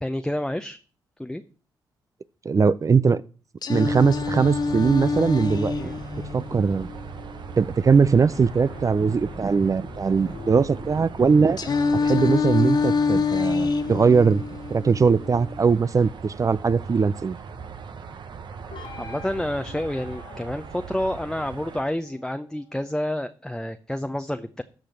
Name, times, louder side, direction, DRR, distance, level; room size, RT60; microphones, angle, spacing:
voice 1, 0.0-0.8 1.2-1.4 5.7-5.9 19.0-24.6, left 1 dB, 5° left, 0.7 m, -29 dB
voice 2, 2.4-3.2 3.7-5.7 6.3-6.9 7.6-11.6 12.0-14.4 14.7-17.4, right 5 dB, 40° right, 0.5 m, -20 dB
Singing, 3.6-7.6 11.6-15.6, left 4 dB, 50° left, 1.0 m, -26 dB
sound 1, 3.9-21.8, right 6 dB, 60° right, 1.0 m, -40 dB
sound 2, 4.3-7.0 8.0-14.9 18.7-22.9, left 5 dB, 75° left, 2.0 m, -46 dB
13.5 x 5.0 x 5.8 m
supercardioid pair, 50°, 9 cm